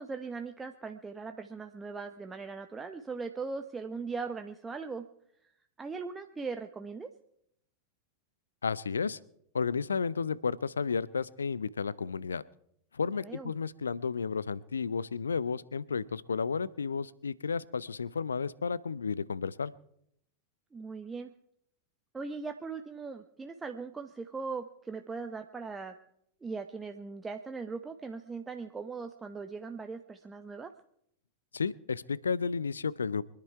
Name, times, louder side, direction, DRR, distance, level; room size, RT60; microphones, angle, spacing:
voice 1, 0.0-5.0 5.8-7.1 13.1-13.5 20.7-21.3 22.1-25.9 26.4-30.7, right 4 dB, 15° right, 6 dB, 0.8 m, -39 dB
voice 2, 8.6-9.2 9.5-12.4 12.9-19.7 31.5-33.2, left 5 dB, 75° left, 21 dB, 0.5 m, -32 dB
24.5 x 10.5 x 4.6 m, 0.73 s
figure-of-eight pair, 90°, 0 cm